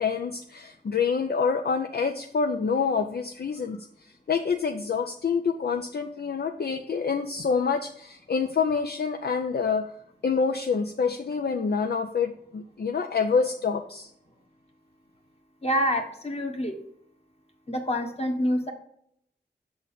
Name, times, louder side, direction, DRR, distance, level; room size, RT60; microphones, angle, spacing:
voice 1, 0.0-3.9 4.3-9.8 10.2-14.1, left 5 dB, 60° left, 5 dB, 0.5 m, -27 dB
voice 2, 15.6-16.8 17.7-18.7, equal, 35° left, 3 dB, 1.5 m, -27 dB
6.3 x 4.0 x 5.7 m, 0.71 s
cardioid pair, 50°, 19 cm